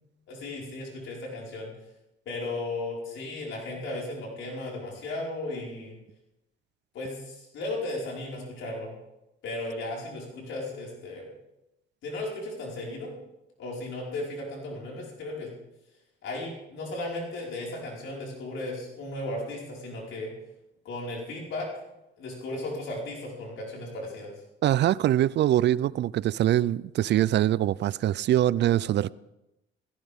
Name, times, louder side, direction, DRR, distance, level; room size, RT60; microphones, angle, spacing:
voice 1, 0.3-1.7 2.2-6.0 6.9-9.0 9.4-11.3 12.0-13.1 13.6-15.5 16.2-20.3 20.8-21.7 22.2-24.3, left 2 dB, 80° left, 5.1 m, -35 dB
voice 2, 24.6-29.1, right 12 dB, 60° right, 0.4 m, -23 dB
17.0 x 16.0 x 3.6 m
cardioid pair, 90°, 20 cm